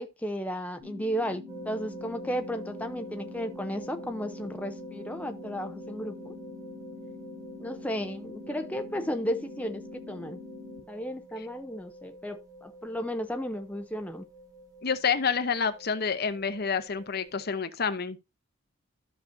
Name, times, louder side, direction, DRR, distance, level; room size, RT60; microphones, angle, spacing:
voice 1, 0.0-6.3 7.6-10.4 10.9-14.3, equal, 10° left, 0.6 m, -34 dB
sound 1, 0.8-10.8, left 3 dB, 45° right, 4.5 m, -45 dB
sound 2, 1.5-17.5, right 1 dB, 20° right, 1.4 m, -47 dB
voice 2, 14.8-18.2, left 6 dB, 55° left, 0.9 m, -28 dB
13.0 x 6.0 x 2.7 m
head